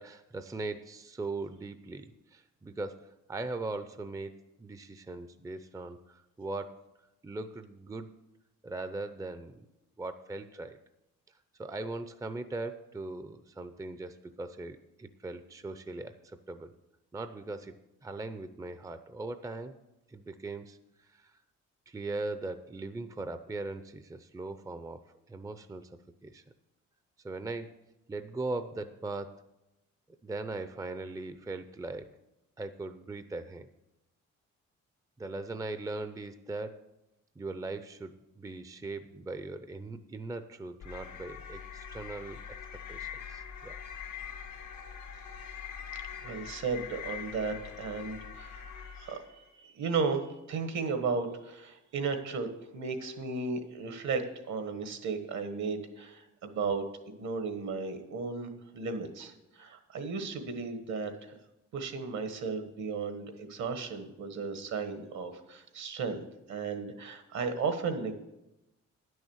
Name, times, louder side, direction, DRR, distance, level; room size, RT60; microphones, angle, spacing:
voice 1, 0.0-3.0 3.3-6.9 7.2-8.2 8.6-9.7 10.0-10.8 11.6-16.7 17.1-19.8 20.1-20.8 21.0-21.3 21.9-25.0 25.3-26.4 27.2-27.8 28.1-29.4 30.2-32.1 32.6-33.7 35.2-36.8 37.4-42.6 42.9-43.8, right 2 dB, 10° right, 11 dB, 0.5 m, -40 dB
sound 1, 40.8-49.4, left 8 dB, 80° left, 1.8 m, -43 dB
voice 2, 46.2-48.6 48.9-61.3 61.7-68.1, right 4 dB, 65° right, 8 dB, 1.5 m, -35 dB
10.0 x 6.4 x 7.2 m, 0.94 s
cardioid pair, 90°, 30 cm